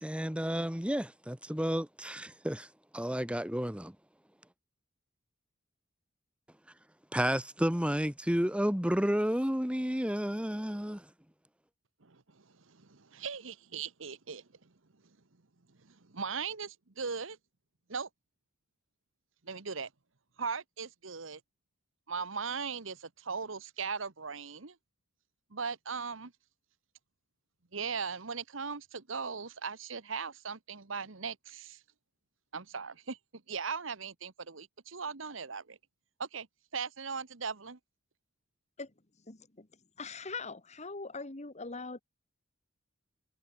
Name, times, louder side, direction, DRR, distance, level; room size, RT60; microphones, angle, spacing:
voice 1, 0.0-2.7 2.9-4.0 7.1-11.1, equal, 5° right, 1.9 m, -31 dB
voice 2, 12.0-14.5 15.8-17.4 17.9-18.1 19.4-19.9 20.4-21.4 22.1-24.7 25.5-26.3 27.7-31.8 32.5-33.2 33.5-35.8 36.2-36.5 36.7-37.8, right 5 dB, 75° right, 1.3 m, -38 dB
voice 3, 39.2-39.7 40.0-42.0, left 4 dB, 35° left, 1.8 m, -42 dB
head